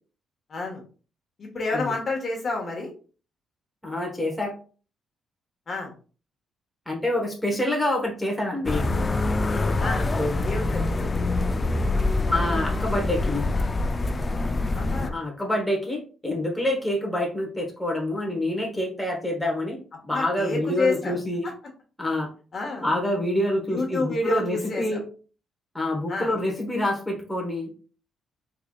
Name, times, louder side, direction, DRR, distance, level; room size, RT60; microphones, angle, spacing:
voice 1, 0.5-0.8 1.4-2.9 5.7-5.9 9.8-10.1 10.4-11.0 14.7-15.2 20.1-21.1 21.4-21.5 22.5-22.9 23.7-25.0 26.1-26.3, left 2 dB, 45° left, 0 dB, 1.3 m, -29 dB
voice 2, 3.8-4.5 6.9-8.9 10.1-10.4 12.3-13.5 15.1-21.5 22.0-22.3 22.8-25.0 25.7-27.7, left 1 dB, 5° left, -1 dB, 1.0 m, -27 dB
sound 1, 8.7-15.1, left 2 dB, 30° left, 0.3 m, -25 dB
3.7 x 3.3 x 2.3 m, 0.38 s
cardioid pair, 90°, 0 cm